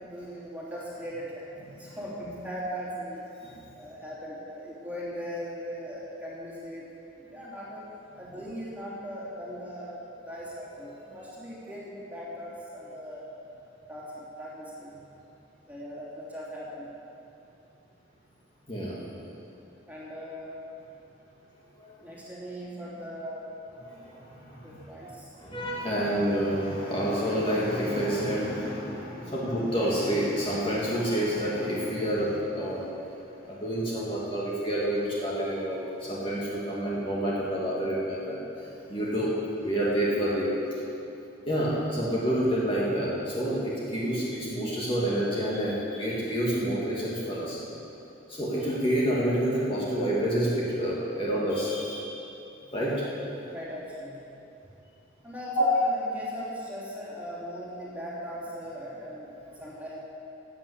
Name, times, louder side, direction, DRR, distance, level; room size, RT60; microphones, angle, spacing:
voice 1, 0.0-3.2 3.7-7.9 8.2-13.3 13.9-14.9 15.7-16.9 19.9-20.6 22.0-23.5 24.6-25.3 29.2-29.5 40.8-40.9 53.5-54.4 55.2-60.0, equal, 10° right, -7 dB, 3.2 m, -39 dB
voice 2, 24.0-24.8 25.4-32.9 33.4-39.3 39.6-40.5 41.5-47.6 48.3-52.1 52.7-53.0 55.5-55.6, equal, 25° left, -6 dB, 2.2 m, -28 dB
14.5 x 8.6 x 8.1 m, 2.8 s
head